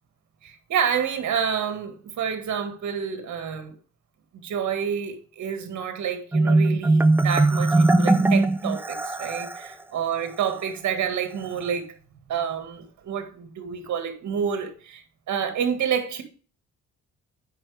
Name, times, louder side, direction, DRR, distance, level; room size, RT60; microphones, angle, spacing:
voice 1, 0.4-3.8 4.4-11.9 12.3-16.2, right 7 dB, 70° right, 1.9 m, -28 dB
Marimba xylophone, 6.3-9.7, right 2 dB, 5° right, 0.4 m, -20 dB
8.7 x 5.8 x 3.4 m
cardioid pair, 90°, 30 cm